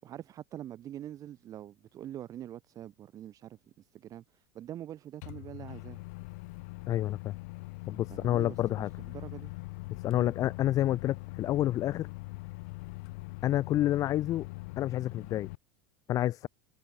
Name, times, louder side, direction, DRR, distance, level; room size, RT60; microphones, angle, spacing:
voice 1, 0.0-6.0 8.1-9.5 10.1-10.3, right 11 dB, 40° right, 4.3 m, -45 dB
Microwave oven, 5.2-15.6, left 25 dB, 70° left, 6.6 m, -42 dB
voice 2, 6.9-7.4 7.9-8.9 10.0-12.1 13.4-14.5 14.8-15.5 16.1-16.5, left 13 dB, 40° left, 0.5 m, -29 dB
hypercardioid pair, 100°, 9 cm